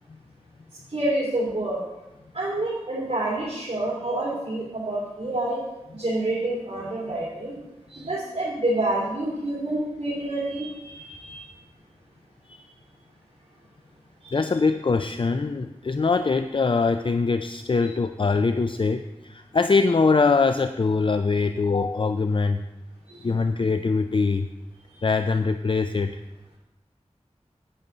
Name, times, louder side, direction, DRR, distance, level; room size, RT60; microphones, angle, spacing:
voice 1, 0.9-1.8 2.3-5.6 5.9-7.5 7.9-11.5 14.2-14.4 17.8-17.9 23.1-23.2 24.9-25.0, right 1 dB, 60° right, -8 dB, 3.2 m, -28 dB
voice 2, 14.3-22.6 23.2-24.5 25.0-26.2, left 4 dB, 45° left, 9 dB, 0.4 m, -23 dB
11.0 x 9.0 x 3.9 m, 0.97 s
wide cardioid pair, 60°, 12 cm